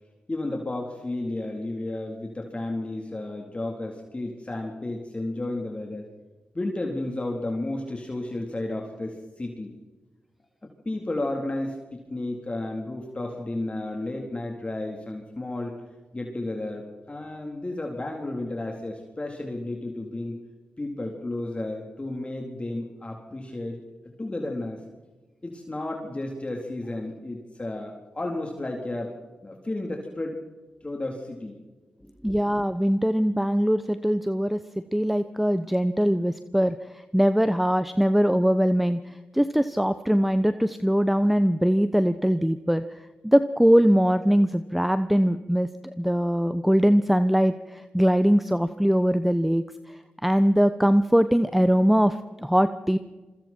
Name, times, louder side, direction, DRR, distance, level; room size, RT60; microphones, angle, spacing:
voice 1, 0.3-6.1 6.5-9.7 10.9-15.8 16.1-20.4 20.8-23.8 24.2-24.8 25.4-29.1 29.4-30.4 30.8-31.6 32.2-32.3, left 2 dB, 30° left, 1 dB, 3.7 m, -32 dB
voice 2, 32.2-34.6 34.9-53.0, equal, 5° right, 11 dB, 1.0 m, -22 dB
26.5 x 22.5 x 4.5 m, 1.2 s
supercardioid pair, 40°, 4 cm